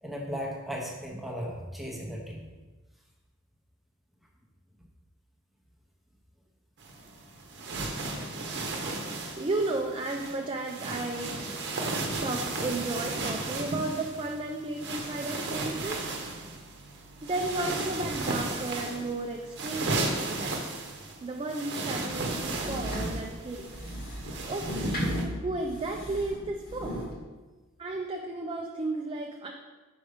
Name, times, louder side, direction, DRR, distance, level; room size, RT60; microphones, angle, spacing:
voice 1, 0.0-2.5, equal, ahead, -2 dB, 0.8 m, -36 dB
sound 1, 6.8-25.2, right 2 dB, 55° right, 0.9 m, -35 dB
voice 2, 9.4-11.4 12.2-16.0 17.2-20.7 21.2-23.7 24.5-25.0 25.4-27.0 27.8-29.5, right 2 dB, 25° right, 1 dB, 0.4 m, -33 dB
sound 2, 22.1-27.1, equal, 45° left, 1.6 m, -35 dB
5.2 x 5.1 x 4.9 m, 1.2 s
head